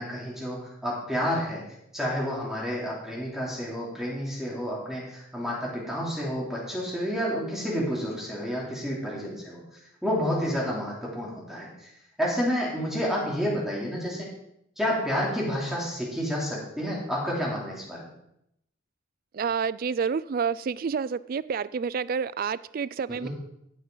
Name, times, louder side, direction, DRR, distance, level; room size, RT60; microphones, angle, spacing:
voice 1, 0.0-1.6 1.9-9.6 10.0-11.7 12.2-14.3 14.8-18.1 23.1-23.3, equal, ahead, -5 dB, 3.0 m, -30 dB
voice 2, 19.3-23.3, right 6 dB, 45° right, 19 dB, 0.3 m, -29 dB
15.0 x 8.6 x 3.9 m, 0.77 s
head